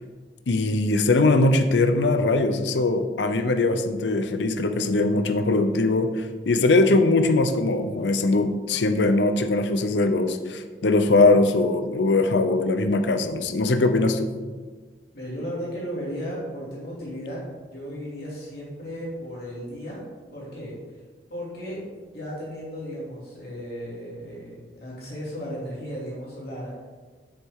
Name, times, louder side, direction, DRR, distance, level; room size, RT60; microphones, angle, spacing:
voice 1, 0.5-14.3, left 2 dB, 85° left, 8 dB, 0.6 m, -21 dB
voice 2, 15.1-20.0 20.3-21.0 21.3-24.5 24.8-26.9, equal, 60° left, -6 dB, 2.7 m, -35 dB
7.9 x 7.2 x 3.6 m, 1.4 s
head